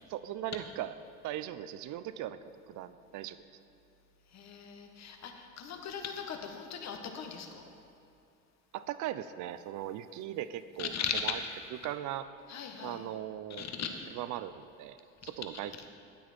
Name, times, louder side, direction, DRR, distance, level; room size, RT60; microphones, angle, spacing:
voice 1, 0.1-0.9 1.2-2.4 2.7-3.4 8.7-10.9 11.2-11.4 11.8-12.3 12.8-13.6 14.1-15.9, right 12 dB, 45° right, 13 dB, 0.6 m, -39 dB
voice 2, 4.3-7.6 10.8-11.2 12.5-13.0 13.6-13.9, left 7 dB, 40° left, 4 dB, 1.5 m, -38 dB
13.0 x 9.2 x 4.4 m, 2.7 s
hypercardioid pair, 80°, 41 cm